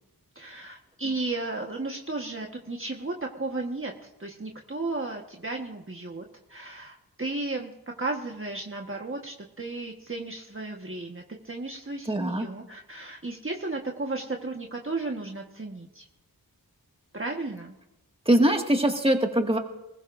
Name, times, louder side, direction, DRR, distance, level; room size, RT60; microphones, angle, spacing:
voice 1, 0.3-7.7 8.0-16.1 17.1-17.7, right 2 dB, 35° right, 1 dB, 1.4 m, -34 dB
voice 2, 12.1-12.5 18.3-19.6, right 1 dB, 15° right, 2 dB, 2.0 m, -22 dB
20.5 x 20.0 x 2.6 m, 0.94 s
wide cardioid pair, 50°, 38 cm